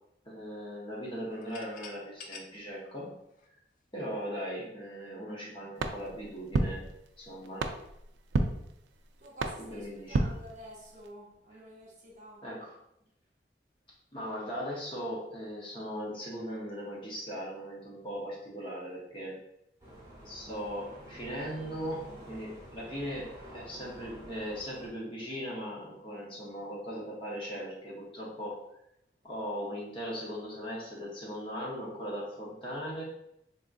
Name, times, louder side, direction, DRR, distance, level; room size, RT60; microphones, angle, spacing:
voice 1, 0.2-3.1 3.9-6.8 7.2-7.7 9.7-10.3 12.4-12.7 14.1-19.4 20.2-28.6 29.2-33.0, equal, 30° left, -4 dB, 0.7 m, -39 dB
sound 1, 1.3-4.1, left 4 dB, 45° left, 0.3 m, -49 dB
sound 2, 5.8-11.1, right 3 dB, 80° right, 0.3 m, -34 dB
voice 2, 9.2-12.4, right 1 dB, 45° right, -2 dB, 0.6 m, -49 dB
sound 3, 19.8-24.9, right 1 dB, 20° right, 0.9 m, -49 dB
3.4 x 2.5 x 2.5 m, 0.80 s
head